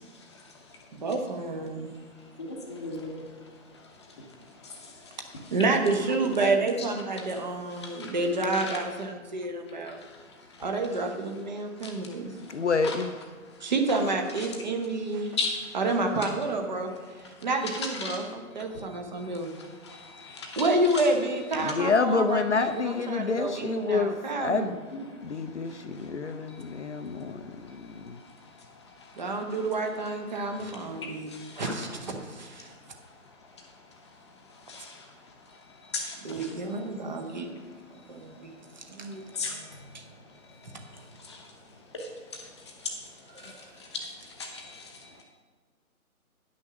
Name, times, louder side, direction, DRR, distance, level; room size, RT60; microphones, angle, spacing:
voice 1, 1.0-1.9 5.5-10.0 10.6-12.3 13.6-15.4 15.7-16.9 17.4-19.5 20.3-24.8 29.2-32.7 36.2-37.5 38.1-39.6 39.9-40.0 43.3-43.6, right 2 dB, 30° right, 3 dB, 1.0 m, -29 dB
voice 2, 2.7-3.2 12.8-12.9 15.4-15.5 19.9-20.3 34.7-34.9 35.9-36.1 39.4-39.5 44.5-44.8, left 4 dB, 20° left, 1 dB, 0.9 m, -32 dB
voice 3, 12.5-13.2 21.6-24.7 25.2-28.2, left 4 dB, 50° left, 9 dB, 0.6 m, -28 dB
10.0 x 6.3 x 6.0 m, 1.5 s
figure-of-eight pair, 155°, 45 cm